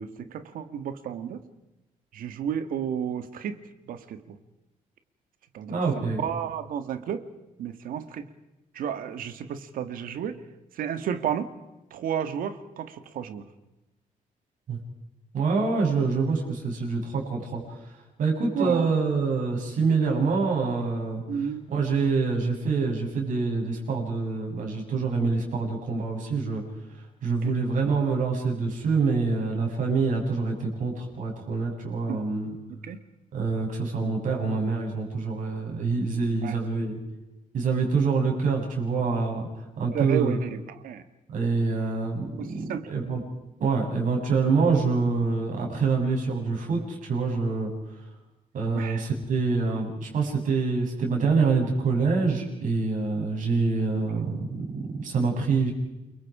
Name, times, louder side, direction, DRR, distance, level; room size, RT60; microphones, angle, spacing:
voice 1, 0.0-1.4 2.1-3.6 3.9-4.4 5.5-5.8 6.2-7.2 7.6-8.3 8.7-10.4 10.8-11.5 11.9-13.5 18.5-18.9 21.3-21.7 27.4-27.5 32.1-32.2 32.7-33.0 36.4-36.6 39.9-41.0 42.4-42.9 48.7-49.1, right 8 dB, 85° right, 10 dB, 1.8 m, -32 dB
voice 2, 5.7-6.2 14.7-14.8 15.3-17.8 18.2-21.2 21.7-26.6 27.2-32.6 33.3-37.0 37.5-40.4 41.3-43.2 43.6-47.7 48.5-55.7, right 4 dB, 65° right, 1 dB, 7.2 m, -26 dB
29.0 x 23.5 x 5.0 m, 0.97 s
cardioid pair, 115°, 14 cm